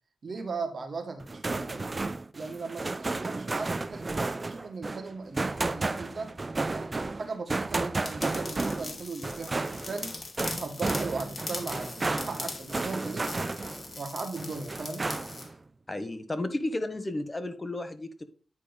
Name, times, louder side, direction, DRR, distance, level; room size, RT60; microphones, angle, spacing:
voice 1, 0.2-1.9 2.3-6.3 6.7-13.3 14.0-15.1, right 4 dB, 55° right, 1.5 m, -38 dB
sound 1, 1.2-14.0 14.4-15.5, right 3 dB, 35° right, 0.5 m, -33 dB
sound 2, 8.0-15.5, left 3 dB, 45° left, 1.7 m, -41 dB
voice 2, 15.9-18.2, left 2 dB, 25° left, 1.2 m, -33 dB
9.7 x 3.4 x 5.2 m
cardioid pair, 55°, 0 cm